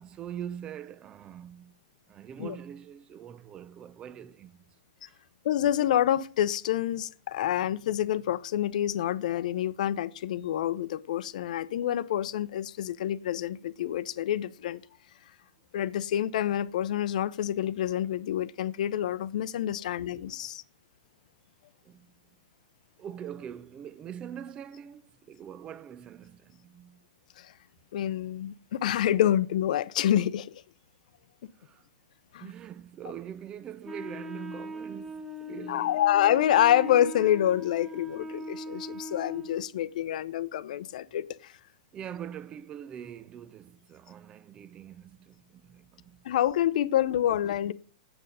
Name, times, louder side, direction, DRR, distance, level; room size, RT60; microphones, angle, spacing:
voice 1, 0.0-1.7 2.1-4.6 5.1-5.2 19.7-20.1 20.4-20.5 21.8-22.1 23.0-27.0 31.6-31.8 32.4-36.0 41.9-46.2, right 9 dB, 20° right, 0.5 m, -43 dB
voice 2, 5.4-14.8 15.7-20.6 27.4-27.5 27.9-30.5 32.3-32.4 35.7-41.5 46.2-47.7, left 11 dB, 65° left, 0.6 m, -27 dB
Wind instrument woodwind instrument, 33.8-39.7, equal, 5° right, 0.8 m, -40 dB
7.9 x 7.7 x 5.5 m
hypercardioid pair, 145°, 4 cm